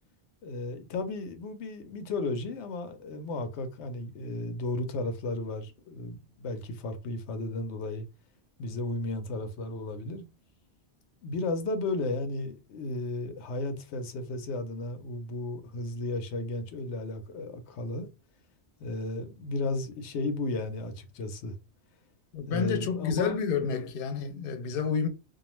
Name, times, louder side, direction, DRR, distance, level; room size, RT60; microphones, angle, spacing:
voice 1, 0.4-8.0 8.6-10.3 11.2-18.1 18.8-21.6 22.5-23.3, left 2 dB, 90° left, 0.9 m, -34 dB
voice 2, 22.3-25.1, left 6 dB, 60° left, 0.7 m, -29 dB
2.3 x 2.2 x 3.0 m
omnidirectional pair, 1.1 m